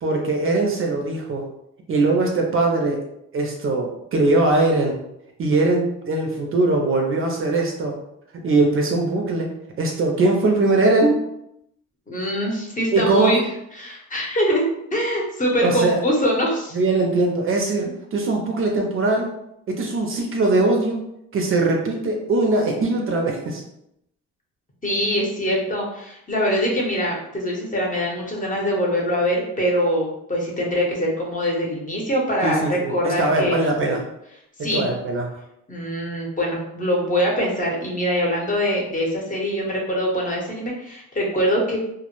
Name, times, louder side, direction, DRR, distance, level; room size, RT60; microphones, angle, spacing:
voice 1, 0.0-1.5 1.9-3.0 3.3-5.0 5.4-8.0 8.4-11.2 12.9-13.3 15.6-16.0 16.7-19.3 19.7-21.0 21.3-23.6 32.4-34.0 34.7-35.3, right 2 dB, 45° right, 1 dB, 0.5 m, -21 dB
voice 2, 12.1-13.4 13.8-14.7 14.9-16.8 24.8-34.0 34.6-34.8 35.7-41.8, equal, 25° left, -2 dB, 0.7 m, -23 dB
2.1 x 2.0 x 2.9 m, 0.79 s
cardioid pair, 90°, 30 cm